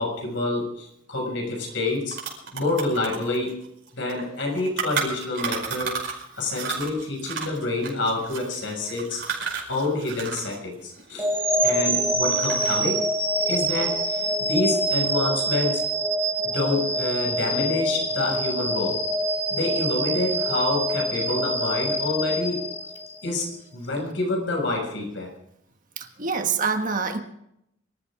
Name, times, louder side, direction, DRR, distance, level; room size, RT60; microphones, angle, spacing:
voice 1, 0.0-2.2 2.5-3.6 3.9-9.2 9.7-11.3 11.6-13.0 13.5-15.8 16.4-19.0 19.5-22.7 23.2-25.3, left 2 dB, 65° left, 1 dB, 6.5 m, -27 dB
sound 1, 1.5-1.6 1.8-6.2 6.5-10.6 10.8-12.0 12.3-12.9, right 5 dB, 60° right, 5.3 m, -32 dB
sound 2, 11.2-23.3, right 1 dB, 10° right, 1.8 m, -25 dB
voice 2, 26.0-27.2, right 5 dB, 40° right, 6 dB, 1.5 m, -26 dB
25.0 x 14.0 x 3.8 m, 0.76 s
head